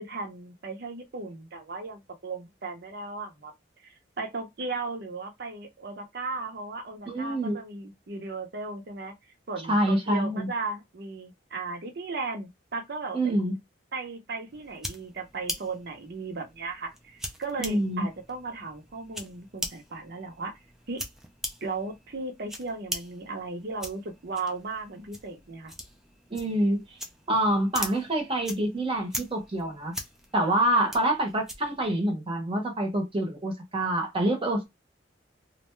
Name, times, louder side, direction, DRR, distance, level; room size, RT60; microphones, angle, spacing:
voice 1, 0.0-3.5 3.8-9.1 9.5-13.3 13.9-20.5 20.9-21.0 21.6-25.7, right 3 dB, 60° right, 0.7 m, -36 dB
voice 2, 7.1-7.6 9.7-10.5 13.1-13.6 17.6-18.1 26.3-26.8 27.3-29.9 30.3-34.7, right 1 dB, 30° right, 0.8 m, -26 dB
sound 1, 14.5-31.9, equal, 5° right, 0.4 m, -41 dB
2.5 x 2.1 x 3.1 m
head